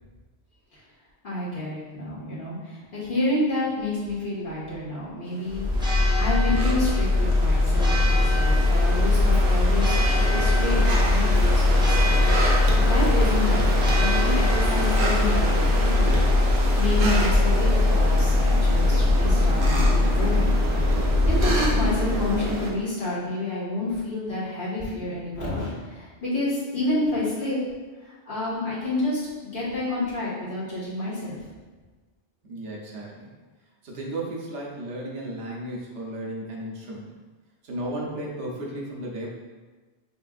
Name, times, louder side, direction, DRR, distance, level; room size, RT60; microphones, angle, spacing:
voice 1, 1.2-16.2 16.8-20.9 21.3-27.6 28.0-29.3 29.5-31.4, left 2 dB, 50° left, -9 dB, 1.6 m, -29 dB
sound 1, 5.4-22.7, right 2 dB, 55° right, 0.9 m, -30 dB
Church bell, 5.5-22.7, left 2 dB, 5° right, 0.4 m, -21 dB
voice 2, 32.4-33.3 33.8-37.2 37.6-39.3, right 1 dB, 85° right, -3 dB, 1.1 m, -34 dB
6.8 x 2.4 x 2.4 m, 1.3 s
omnidirectional pair, 1.1 m